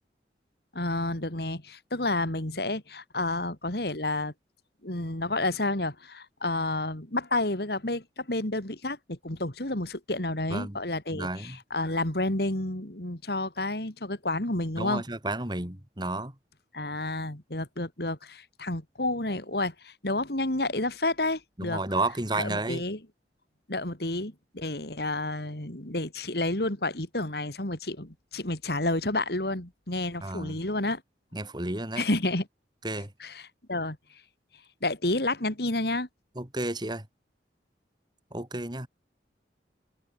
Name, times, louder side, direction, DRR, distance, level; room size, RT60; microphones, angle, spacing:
voice 1, 0.7-4.3 4.8-15.0 16.7-21.8 22.4-23.0 23.7-31.0 32.0-32.5 33.2-34.0 34.8-36.1, left 2 dB, 60° left, 3.1 m, -30 dB
voice 2, 11.1-11.6 14.8-16.3 21.6-22.8 30.2-30.6 31.3-32.0 32.8-33.1 36.4-37.1 38.3-38.9, right 2 dB, 25° right, 3.2 m, -32 dB
head